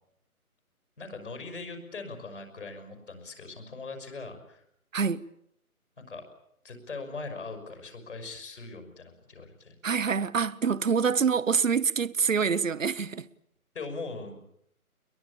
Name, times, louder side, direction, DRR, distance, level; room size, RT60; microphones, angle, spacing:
voice 1, 1.0-4.6 6.0-6.3 6.6-9.8 13.7-14.4, left 3 dB, 55° left, 6.2 m, -40 dB
voice 2, 4.9-5.3 9.8-13.3, right 6 dB, 60° right, 0.9 m, -26 dB
22.5 x 22.0 x 8.7 m
hypercardioid pair, 175°, 44 cm